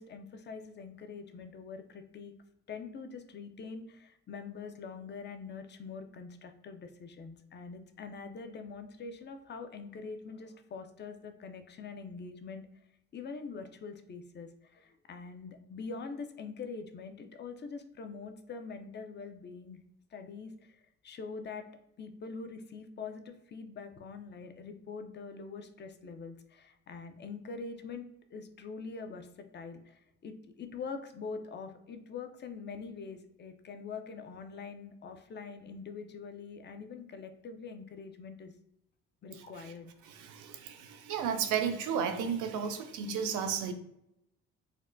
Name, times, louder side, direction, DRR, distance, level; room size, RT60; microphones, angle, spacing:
voice 1, 0.0-2.3 2.7-12.7 13.1-19.8 20.1-21.7 22.0-38.5 39.2-39.9, left 5 dB, 35° left, 7 dB, 0.4 m, -44 dB
voice 2, 39.4-39.7 40.0-43.7, right 7 dB, 85° right, 7 dB, 0.5 m, -33 dB
4.1 x 2.1 x 2.5 m, 0.81 s
cardioid pair, 90°, 30 cm